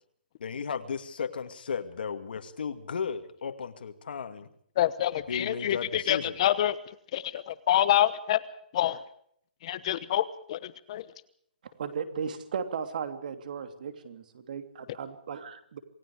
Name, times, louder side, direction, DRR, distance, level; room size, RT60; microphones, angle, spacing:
voice 1, 0.4-4.5 5.3-6.4, left 6 dB, 70° left, 8 dB, 2.4 m, -35 dB
voice 2, 4.8-6.8 7.1-8.4 8.7-9.0 9.6-11.0, left 12 dB, 35° left, 15 dB, 1.0 m, -27 dB
voice 3, 11.6-15.8, right 6 dB, 55° right, 9 dB, 3.0 m, -36 dB
27.5 x 18.5 x 5.0 m, 0.66 s
hypercardioid pair, 165°, 5 cm